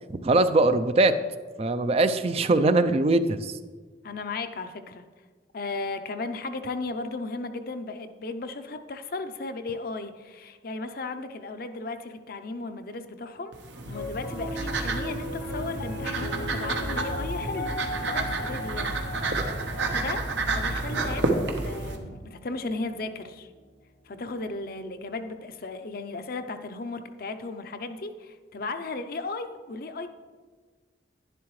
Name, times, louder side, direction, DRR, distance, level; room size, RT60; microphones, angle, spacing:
voice 1, 0.2-1.1 1.6-3.5, right 2 dB, 35° right, 11 dB, 0.4 m, -21 dB
voice 2, 4.0-5.0 5.5-13.6 13.9-17.7 18.0-18.9 19.3-19.6 19.9-23.5 24.1-30.1, left 3 dB, 55° left, 8 dB, 0.6 m, -35 dB
sound 1, 13.5-22.0, right 3 dB, 80° right, 1.1 m, -30 dB
Piano, 13.9-24.2, left 1 dB, 80° left, 1.0 m, -38 dB
11.0 x 10.5 x 3.2 m, 1.5 s
head